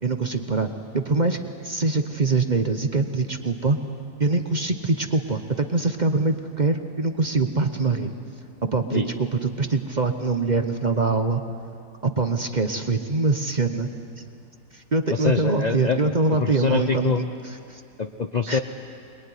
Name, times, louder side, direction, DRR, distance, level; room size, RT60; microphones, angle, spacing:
voice 1, 0.0-3.8 4.2-8.1 8.6-11.4 12.0-13.9 14.2-14.3 14.7-17.8 18.5-18.6, right 3 dB, 30° right, 7 dB, 0.9 m, -24 dB
voice 2, 15.1-16.0 16.3-17.3 18.0-18.6, left 5 dB, 45° left, 7 dB, 0.6 m, -24 dB
23.0 x 22.5 x 9.8 m, 2.5 s
omnidirectional pair, 1.8 m